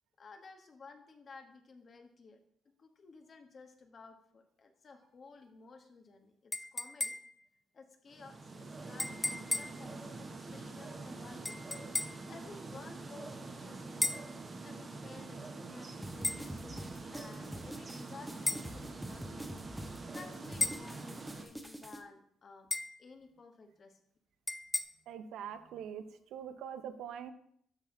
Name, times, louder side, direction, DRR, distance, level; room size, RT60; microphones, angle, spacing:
voice 1, 0.2-2.4 2.8-7.1 7.7-11.6 12.3-19.4 20.1-22.7 23.0-24.0, left 4 dB, 45° left, 5 dB, 1.3 m, -55 dB
sound 1, 6.5-7.4 9.0-9.8 11.5-12.3 14.0-14.3 16.2-16.5 18.5-18.7 20.6-20.9 22.7-23.0 24.5-24.8, left 2 dB, 15° left, 0.5 m, -35 dB
sound 2, 8.1-21.4, right 3 dB, 35° right, 1.1 m, -45 dB
sound 3, 16.0-22.0, equal, 5° right, 0.9 m, -46 dB
voice 2, 25.1-27.3, right 8 dB, 80° right, 10 dB, 0.7 m, -43 dB
12.5 x 4.3 x 3.8 m, 0.67 s
cardioid pair, 90°, 0 cm